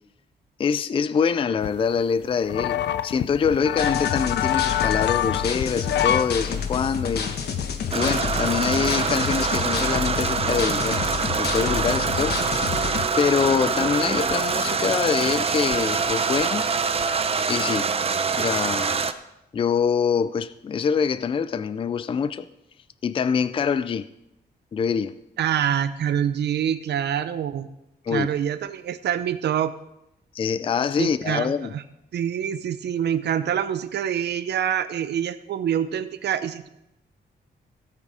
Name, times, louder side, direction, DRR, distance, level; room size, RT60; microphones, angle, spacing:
voice 1, 0.6-2.8 3.0-7.3 7.9-11.0 11.4-12.4 13.2-16.6 17.5-17.9 18.4-19.0 19.5-22.5 23.0-24.1 24.7-25.2 28.0-28.3 30.3-31.7, left 6 dB, 30° left, 0.4 m, -24 dB
sound 1, 1.6-6.3 6.7-6.8 7.3-8.7 9.1-9.2 9.7-9.8 10.0-11.5 12.0-12.1 12.3-12.9 13.4-13.6 14.3-14.4 14.7-15.8 16.1-16.4 16.7-17.2, left 10 dB, 85° left, 0.6 m, -27 dB
sound 2, 3.8-13.1, left 6 dB, 65° left, 1.2 m, -29 dB
sound 3, 7.9-19.1, right 5 dB, 35° right, 0.6 m, -25 dB
voice 2, 25.4-27.7 28.1-29.7 31.0-31.8 32.1-36.7, right 9 dB, 75° right, 0.7 m, -26 dB
16.5 x 6.7 x 4.9 m
wide cardioid pair, 150°, 18 cm